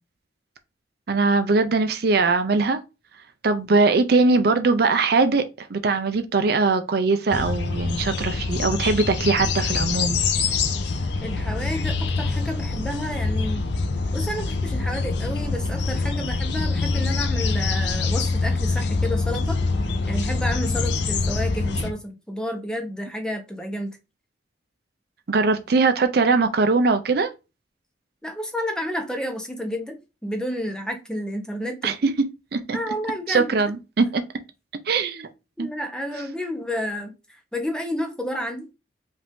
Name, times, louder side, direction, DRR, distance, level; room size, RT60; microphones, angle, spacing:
voice 1, 1.1-2.8 3.4-10.2 25.3-27.3 31.8-31.9 32.5-32.8 33.3-34.2 34.9-35.3 35.6-35.7, right 3 dB, 60° right, 0.5 m, -21 dB
sound 1, 7.3-21.9, left 3 dB, 70° left, 0.6 m, -25 dB
voice 2, 11.2-13.7 14.1-19.6 20.1-24.0 28.2-32.1 32.7-33.7 35.6-38.7, equal, 5° left, 0.8 m, -30 dB
5.2 x 2.6 x 3.5 m
head